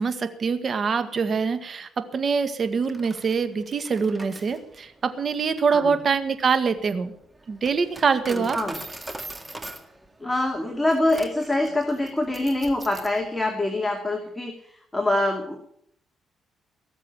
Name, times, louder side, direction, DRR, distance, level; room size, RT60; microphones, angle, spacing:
voice 1, 0.0-7.1 7.5-8.6, right 5 dB, 45° right, 10 dB, 1.8 m, -24 dB
Coin (dropping), 2.7-13.2, right 1 dB, 15° right, 1.9 m, -42 dB
voice 2, 8.3-8.8 10.2-15.6, left 1 dB, 10° left, 2 dB, 2.5 m, -25 dB
18.0 x 7.5 x 9.0 m, 0.70 s
cardioid pair, 90°, 0 cm